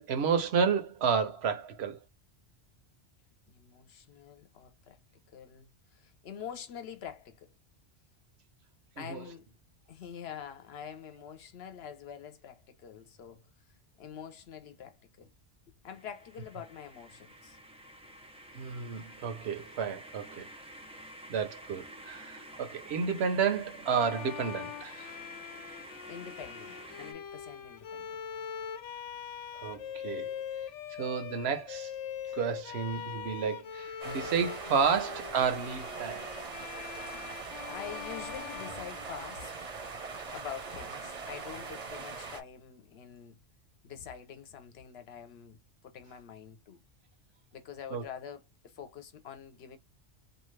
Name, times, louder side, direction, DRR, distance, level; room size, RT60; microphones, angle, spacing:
voice 1, 0.0-2.0 9.0-9.2 18.5-20.5 21.3-25.1 29.6-30.3 31.0-31.9 32.3-36.3 47.9-48.0, right 6 dB, 65° right, 0.9 m, -31 dB
voice 2, 3.5-5.0 5.3-7.5 9.0-9.5 9.9-13.5 14.0-15.3 15.8-17.6 26.1-28.1 37.7-39.5 40.3-43.4 43.8-46.8 47.5-49.8, left 8 dB, 65° left, 0.9 m, -46 dB
sound 1, 15.9-27.1, right 1 dB, 10° right, 0.4 m, -50 dB
Bowed string instrument, 23.8-39.6, left 8 dB, 90° left, 0.9 m, -42 dB
sound 2, 34.0-42.4, right 4 dB, 40° right, 0.7 m, -42 dB
2.7 x 2.4 x 3.1 m
omnidirectional pair, 1.2 m